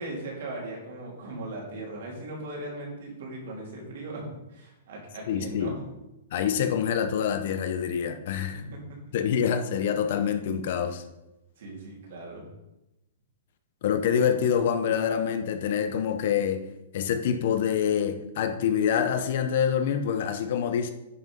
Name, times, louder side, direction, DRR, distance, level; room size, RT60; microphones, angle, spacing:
voice 1, 0.0-5.9 8.5-9.2 11.6-12.4, right 2 dB, 50° right, -2 dB, 3.5 m, -38 dB
voice 2, 5.3-5.8 6.3-8.6 9.1-11.0 13.8-16.6 16.9-20.9, left 8 dB, 40° left, 8 dB, 0.8 m, -26 dB
9.7 x 6.1 x 5.4 m, 0.96 s
hypercardioid pair, 180°, 0 cm